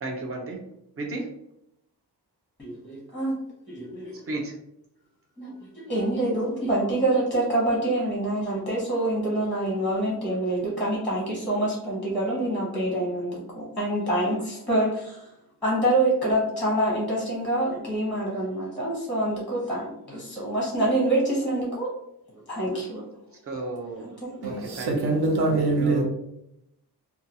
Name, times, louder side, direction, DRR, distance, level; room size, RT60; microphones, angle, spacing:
voice 1, 0.0-0.6 1.0-1.3 4.3-4.5 23.5-24.1 24.4-25.2 25.5-26.0, right 2 dB, 35° right, 0.6 m, -33 dB
voice 2, 2.6-3.4 3.7-4.1 5.4-15.3 15.6-21.9 22.5-23.0 24.0-24.4, right 1 dB, ahead, 0.7 m, -26 dB
voice 3, 24.4-26.0, right 2 dB, 75° right, 0.8 m, -24 dB
2.8 x 2.3 x 2.7 m
wide cardioid pair, 165°, 40 cm